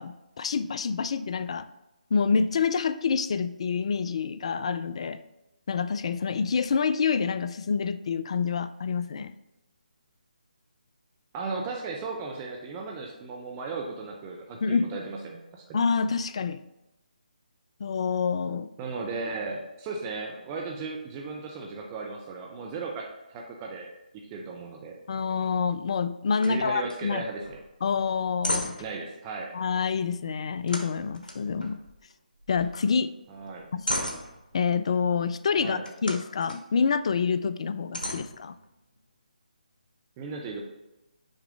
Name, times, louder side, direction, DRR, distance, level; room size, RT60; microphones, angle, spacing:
voice 1, 0.0-1.7 2.1-5.2 5.7-9.3 14.6-14.9 15.7-16.6 17.8-18.7 25.1-27.2 27.8-28.8 29.5-31.8 32.5-33.1 33.7-33.8 34.5-38.5, left 5 dB, 45° left, 13 dB, 0.3 m, -27 dB
voice 2, 11.3-15.8 18.8-23.9 24.1-24.9 26.4-27.6 28.8-29.5 33.3-33.7 35.6-35.9 40.2-40.6, right 4 dB, 20° right, 0 dB, 0.6 m, -36 dB
sound 1, 26.4-26.6 26.9-27.0 27.4-27.7 28.1-29.0 30.7-32.1 32.4-32.9 33.3-34.7 35.8-36.6 37.2-37.3 37.9-39.0, left 1 dB, 85° left, 1.1 m, -35 dB
6.4 x 4.8 x 3.5 m, 0.97 s
figure-of-eight pair, 145°, 5 cm